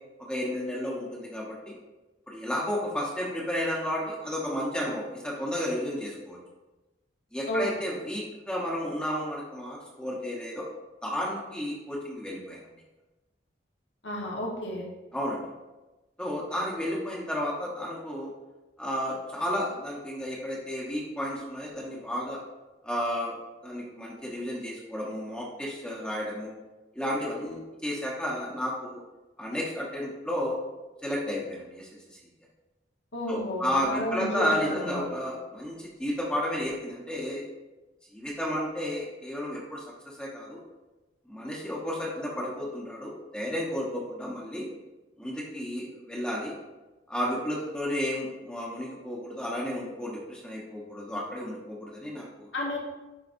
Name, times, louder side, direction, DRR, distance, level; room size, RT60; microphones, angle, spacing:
voice 1, 0.2-1.8 2.3-6.4 7.3-10.7 11.0-12.7 15.1-15.4 16.2-18.3 18.8-22.4 22.8-23.4 23.6-26.5 26.9-29.0 29.4-30.6 31.0-32.2 33.3-37.4 38.1-40.6 41.3-44.6 45.2-46.5 47.1-52.5, left 1 dB, 5° left, -4 dB, 0.9 m, -32 dB
voice 2, 14.0-14.8 33.1-35.1 52.5-52.8, equal, 80° left, -1 dB, 1.3 m, -31 dB
10.5 x 4.0 x 2.6 m, 1.1 s
head